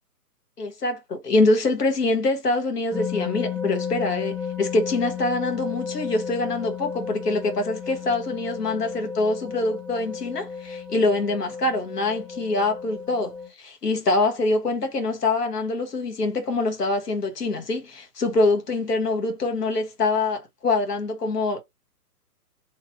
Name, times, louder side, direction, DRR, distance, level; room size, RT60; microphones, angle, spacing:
voice 1, 0.6-21.6, left 2 dB, 75° left, 1.3 m, -24 dB
sound 1, 2.9-13.5, left 6 dB, ahead, 0.6 m, -33 dB
2.9 x 2.9 x 2.7 m
figure-of-eight pair, 130°, 48 cm